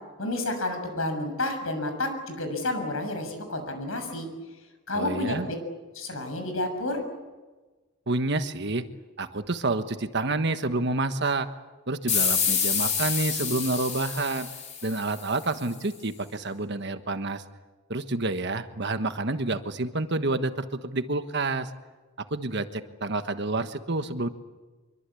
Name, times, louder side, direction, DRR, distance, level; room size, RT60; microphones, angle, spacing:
voice 1, 0.2-4.3 4.9-5.6 5.9-7.0, left 2 dB, 70° left, 6 dB, 6.8 m, -30 dB
voice 2, 4.9-5.5 8.1-8.9 9.2-11.5 11.9-14.5 14.8-17.4 17.9-21.7 22.3-24.3, right 2 dB, 55° right, 9 dB, 1.3 m, -28 dB
sound 1, 12.1-15.4, left 6 dB, 35° left, 4.7 m, -27 dB
25.0 x 23.5 x 8.5 m, 1.3 s
head